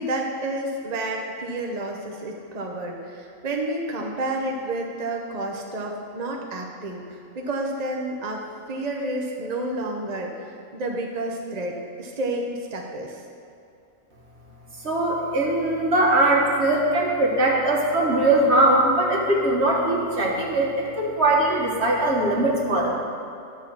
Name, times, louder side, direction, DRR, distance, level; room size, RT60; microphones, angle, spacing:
voice 1, 0.0-13.2, right 1 dB, 40° right, 0 dB, 0.8 m, -30 dB
voice 2, 14.8-22.9, right 1 dB, 55° right, -3 dB, 1.7 m, -21 dB
11.0 x 4.4 x 7.2 m, 2.6 s
omnidirectional pair, 1.3 m